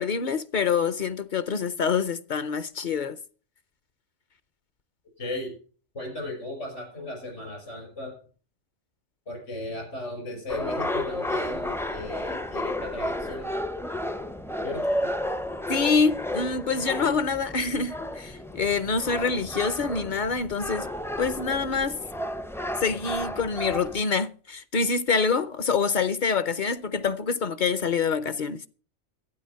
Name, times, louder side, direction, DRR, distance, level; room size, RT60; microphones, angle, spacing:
voice 1, 0.0-3.2 15.7-20.9 21.2-22.0 22.8-28.6, left 5 dB, 50° left, 0.7 m, -26 dB
voice 2, 5.2-5.5 5.9-8.1 9.3-13.5 14.6-15.1, left 1 dB, 75° left, 6.1 m, -36 dB
sound 1, 10.5-24.0, left 1 dB, 5° left, 0.4 m, -32 dB
12.0 x 9.6 x 5.6 m
omnidirectional pair, 1.2 m